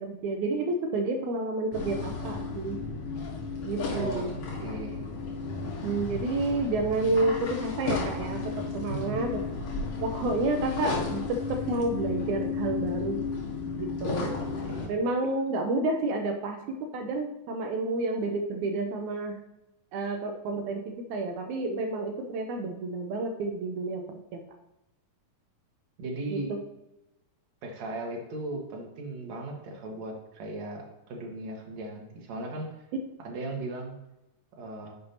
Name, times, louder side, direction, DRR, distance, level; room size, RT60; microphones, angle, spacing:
voice 1, 0.0-2.8 3.6-4.3 5.8-9.3 10.0-13.2 13.8-14.5 14.9-19.4 19.9-24.4 26.3-26.6, right 2 dB, 75° right, 4 dB, 1.9 m, -30 dB
sound 1, 1.7-14.9, left 4 dB, 50° left, 2.1 m, -33 dB
voice 2, 3.9-5.1 8.9-9.2 14.6-14.9 26.0-26.5 27.6-32.7 33.2-33.9 34.6-35.0, right 2 dB, 60° right, 1 dB, 2.5 m, -37 dB
9.9 x 6.9 x 2.8 m, 0.92 s
omnidirectional pair, 4.0 m